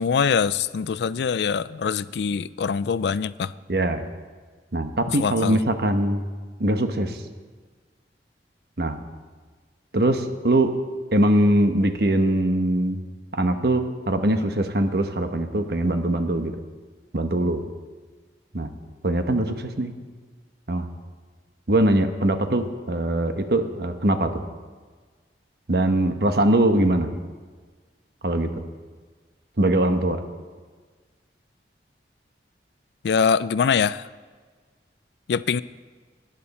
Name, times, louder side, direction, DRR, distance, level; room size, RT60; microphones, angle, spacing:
voice 1, 0.0-3.5 5.1-5.6 33.0-34.1 35.3-35.6, left 6 dB, 70° left, 17 dB, 0.4 m, -23 dB
voice 2, 3.7-4.0 4.7-6.2 6.6-7.2 8.8-9.0 9.9-10.7 11.1-13.0 13.3-16.5 17.1-17.6 18.5-18.7 19.0-19.9 20.7-20.9 21.7-24.4 25.7-27.1 28.2-28.6 29.6-30.2, right 1 dB, 60° right, 7 dB, 1.1 m, -22 dB
19.0 x 10.5 x 4.2 m, 1.5 s
head